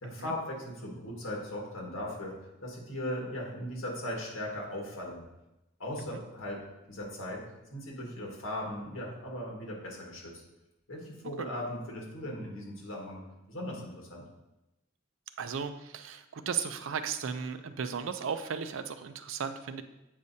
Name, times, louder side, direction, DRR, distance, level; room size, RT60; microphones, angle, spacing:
voice 1, 0.0-5.2 5.8-6.6 6.9-7.4 7.7-10.4 10.9-13.2 13.5-14.3, left 1 dB, 75° left, -2 dB, 1.6 m, -38 dB
voice 2, 15.4-19.8, right 6 dB, 65° right, 10 dB, 0.4 m, -35 dB
8.0 x 4.9 x 2.7 m, 0.95 s
head